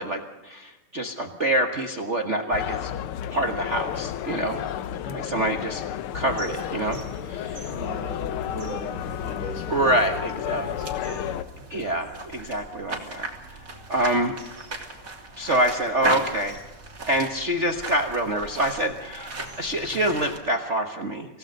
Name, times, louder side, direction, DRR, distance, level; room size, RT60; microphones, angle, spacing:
voice 1, 0.0-2.9 3.3-4.6 5.1-5.8 6.1-7.0 7.3-7.6 9.7-10.7 11.7-13.6 13.9-14.4 15.4-16.6 17.1-21.4, right 1 dB, 70° right, 4 dB, 0.6 m, -26 dB
sound 1, 2.5-11.4, left 10 dB, 85° left, 1.2 m, -32 dB
sound 2, 6.3-20.4, right 2 dB, 25° right, 3.2 m, -37 dB
voice 2, 7.7-11.8, left 1 dB, 40° left, 4 dB, 5.1 m, -39 dB
25.5 x 17.0 x 6.6 m, 1.1 s
omnidirectional pair, 3.5 m